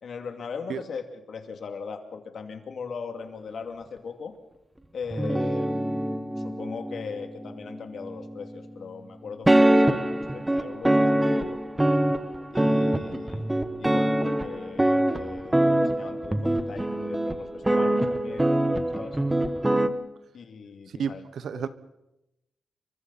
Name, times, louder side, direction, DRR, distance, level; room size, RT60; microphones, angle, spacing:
voice 1, 0.0-4.3 4.9-11.1 11.4-11.6 12.5-13.4 13.8-18.6 18.9-19.2 20.3-21.2 21.6-21.7, left 5 dB, 60° left, 5 dB, 2.6 m, -39 dB
sound 1, 5.1-8.6 9.5-19.9, right 1 dB, 10° right, 1.2 m, -24 dB
voice 2, 21.0-21.7, right 7 dB, 75° right, 13 dB, 1.1 m, -31 dB
29.0 x 24.5 x 4.2 m, 0.88 s
wide cardioid pair, 125°, 0 cm